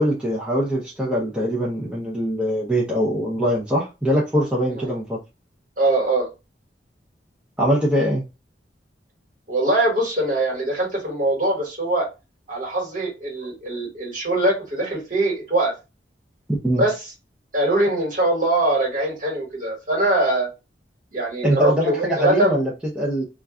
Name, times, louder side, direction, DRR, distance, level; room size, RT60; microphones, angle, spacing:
voice 1, 0.0-5.2 7.6-8.2 16.5-16.8 21.4-23.2, equal, 5° right, 0.5 m, -22 dB
voice 2, 5.8-6.3 9.5-12.1 12.5-15.7 16.8-16.9 17.5-20.5 21.1-22.5, right 1 dB, 45° right, 1.3 m, -22 dB
2.3 x 2.2 x 3.5 m
head